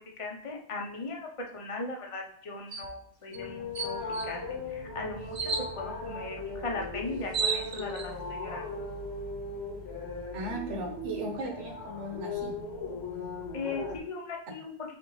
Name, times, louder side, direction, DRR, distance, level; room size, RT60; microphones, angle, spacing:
voice 1, 0.0-4.0 4.2-8.7 13.5-14.7, left 3 dB, 35° left, 1 dB, 0.7 m, -38 dB
sound 1, 2.7-2.9 3.3-3.4 3.7-4.3 5.3-5.7 6.8-6.9 7.1-8.1, right 5 dB, 55° right, 0.3 m, -32 dB
sound 2, 3.3-14.0, left 2 dB, 65° left, 1.2 m, -38 dB
voice 2, 10.3-12.5, right 1 dB, 85° right, 3 dB, 1.3 m, -36 dB
4.3 x 3.4 x 3.1 m, 0.63 s
omnidirectional pair, 1.2 m